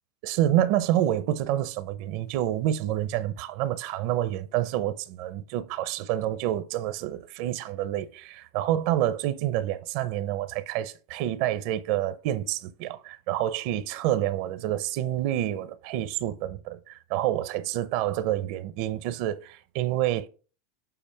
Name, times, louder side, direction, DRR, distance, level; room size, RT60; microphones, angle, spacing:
voice 1, 0.2-20.3, right 12 dB, 60° right, 0.7 m, -28 dB
7.9 x 4.2 x 3.4 m
supercardioid pair, 120°, 0 cm